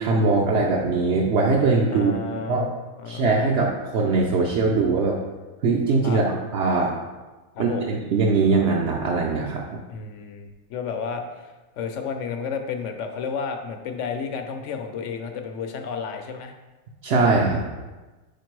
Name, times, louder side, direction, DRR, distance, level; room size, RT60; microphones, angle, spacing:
voice 1, 0.0-2.1 2.5-2.7 3.1-5.2 5.6-6.9 7.6-9.8 17.0-17.6, right 3 dB, 60° right, -2 dB, 0.8 m, -21 dB
voice 2, 1.9-2.7 3.0-3.2 6.0-6.2 7.5-7.9 9.9-16.5, left 6 dB, 65° left, 5 dB, 0.9 m, -32 dB
5.1 x 5.0 x 4.6 m, 1.2 s
omnidirectional pair, 1.5 m